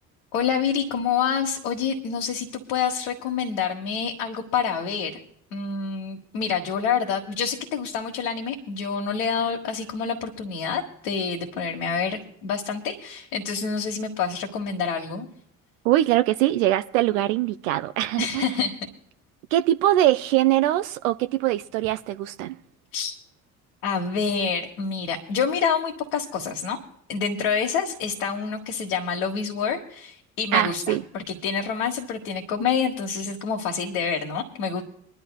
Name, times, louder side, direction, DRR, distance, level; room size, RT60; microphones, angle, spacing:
voice 1, 0.3-5.2 5.5-15.3 18.2-18.9 22.9-23.1 23.8-26.8 27.1-34.8, left 6 dB, 70° left, 1.5 m, -27 dB
voice 2, 15.8-18.6 19.5-22.5 30.5-31.0, right 14 dB, 70° right, 0.6 m, -22 dB
25.0 x 11.5 x 2.3 m
figure-of-eight pair, 50°, 42 cm